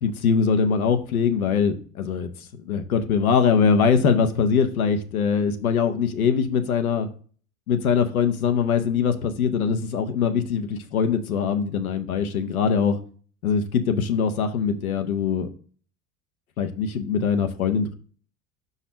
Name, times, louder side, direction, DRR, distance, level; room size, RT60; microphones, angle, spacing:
voice 1, 0.0-2.3 2.7-7.1 7.7-13.0 13.4-15.5 16.6-17.9, left 6 dB, 85° left, 7 dB, 0.8 m, -22 dB
5.9 x 4.1 x 5.0 m, 0.43 s
hypercardioid pair, 70°, 42 cm